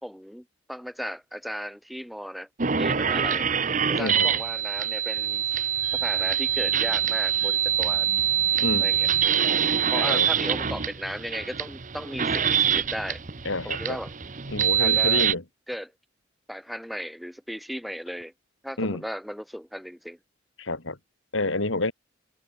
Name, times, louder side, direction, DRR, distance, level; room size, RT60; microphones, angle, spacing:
voice 1, 0.0-2.5 2.8-3.5 4.0-5.4 6.0-8.1 8.8-9.1 9.9-13.2 13.6-14.1 14.8-15.3 15.7-15.9 16.5-18.3 18.6-20.2, equal, ahead, 3.8 m, -35 dB
sound 1, 2.6-15.3, right 9 dB, 40° right, 1.0 m, -25 dB
voice 2, 4.0-4.3 8.6-8.9 9.9-10.3 13.4-14.0 14.5-15.4 18.8-19.0 20.6-21.0 21.3-21.9, left 2 dB, 75° left, 3.0 m, -28 dB
head